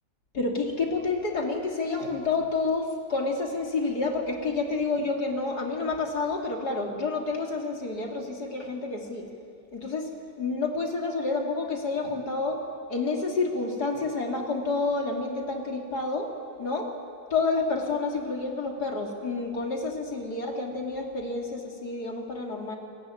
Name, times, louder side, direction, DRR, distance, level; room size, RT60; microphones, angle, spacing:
voice 1, 0.3-9.3 9.7-10.1 10.4-12.6 12.9-16.3 16.6-16.9 17.3-22.8, left 3 dB, 60° left, 2 dB, 3.4 m, -29 dB
28.5 x 19.5 x 9.2 m, 2.5 s
omnidirectional pair, 1.9 m